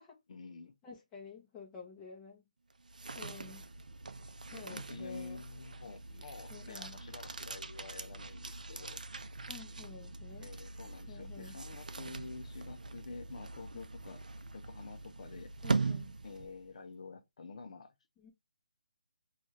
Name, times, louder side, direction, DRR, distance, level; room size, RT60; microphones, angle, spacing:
voice 1, 0.3-0.7 4.5-9.0 10.4-14.2 14.5-15.5 16.2-17.9, left 4 dB, 55° left, 0.5 m, -48 dB
voice 2, 0.8-2.4 3.1-3.7 4.5-5.4 6.5-7.0 9.5-10.5 11.1-11.6 15.6-16.2 18.2-18.3, left 6 dB, 15° left, 0.8 m, -50 dB
sound 1, 2.7-16.8, right 3 dB, 80° right, 0.4 m, -41 dB
2.6 x 2.4 x 3.2 m
figure-of-eight pair, 155°, 4 cm